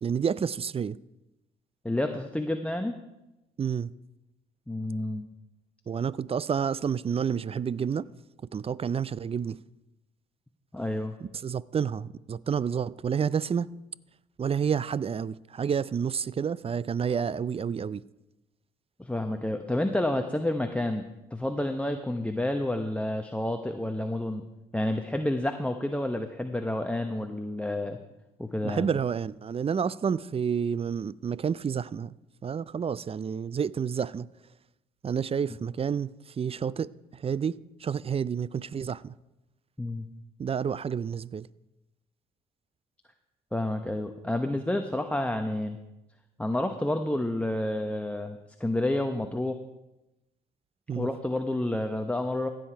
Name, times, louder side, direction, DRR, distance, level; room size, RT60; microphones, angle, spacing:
voice 1, 0.0-1.0 3.6-3.9 5.9-8.1 8.5-9.6 11.4-13.7 14.4-18.0 28.6-32.1 32.4-34.3 35.0-39.1 40.4-41.5 50.9-51.1, right 7 dB, 30° right, 0.4 m, -29 dB
voice 2, 1.8-3.0 4.7-5.2 10.7-11.2 19.0-21.1 21.3-24.4 24.7-28.0 28.4-28.9 39.8-40.1 43.5-45.8 46.4-49.6 50.9-52.5, left 1 dB, 5° left, 0.9 m, -29 dB
15.5 x 7.8 x 4.6 m
hypercardioid pair, 55°, 20 cm